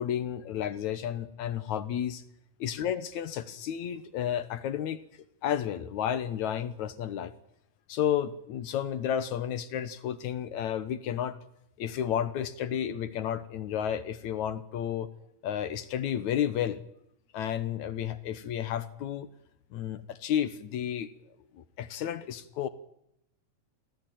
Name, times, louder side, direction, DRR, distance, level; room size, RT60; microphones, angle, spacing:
voice 1, 0.0-2.2 2.6-5.0 5.4-7.3 7.9-11.4 11.8-15.1 15.4-16.8 17.3-19.3 19.7-21.1 21.5-22.7, left 10 dB, 65° left, 14 dB, 2.3 m, -32 dB
25.0 x 16.5 x 9.1 m, 0.78 s
omnidirectional pair, 3.9 m